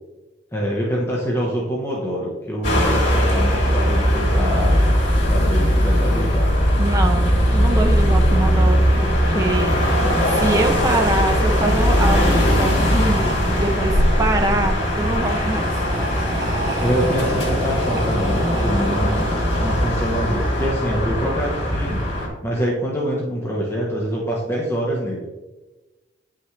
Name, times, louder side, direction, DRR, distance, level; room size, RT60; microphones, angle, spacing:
voice 1, 0.5-4.9 5.3-6.5 16.8-22.0 22.4-25.3, equal, 15° left, -4 dB, 1.0 m, -25 dB
sound 1, 2.6-22.3, equal, 60° left, 2.5 m, -19 dB
voice 2, 6.8-15.7, right 2 dB, 20° right, 3 dB, 0.5 m, -24 dB
sound 2, 10.5-20.2, right 1 dB, 50° right, 1.9 m, -32 dB
8.9 x 5.7 x 3.2 m, 1.1 s
head